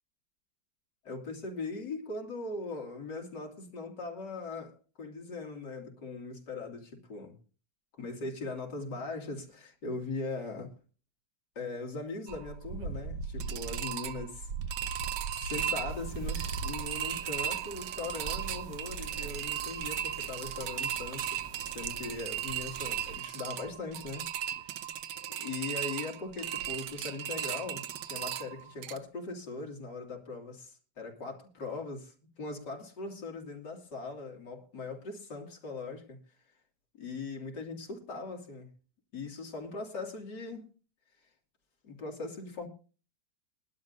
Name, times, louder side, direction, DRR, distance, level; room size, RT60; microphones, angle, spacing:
voice 1, 1.0-7.4 8.0-10.7 11.6-14.5 15.3-21.4 21.7-24.8 25.4-36.2 37.0-38.7 39.1-40.7 41.8-42.7, left 3 dB, 85° left, 3.1 m, -40 dB
sound 1, 12.3-29.0, right 9 dB, 90° right, 1.5 m, -36 dB
sound 2, 15.9-23.2, right 6 dB, 55° right, 1.1 m, -48 dB
21.5 x 11.5 x 2.6 m
omnidirectional pair, 1.8 m